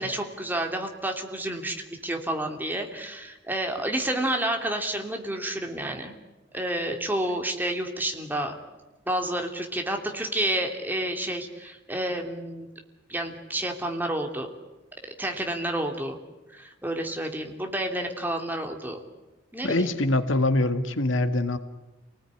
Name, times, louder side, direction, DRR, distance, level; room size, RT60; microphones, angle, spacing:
voice 1, 0.0-1.8 2.0-6.1 6.5-8.6 9.1-12.7 13.1-14.5 15.2-16.2 16.5-19.0 19.5-19.9, right 1 dB, 10° right, 3 dB, 3.0 m, -30 dB
voice 2, 19.6-21.6, left 2 dB, 80° left, 9 dB, 1.9 m, -24 dB
28.5 x 19.5 x 9.9 m, 1.1 s
head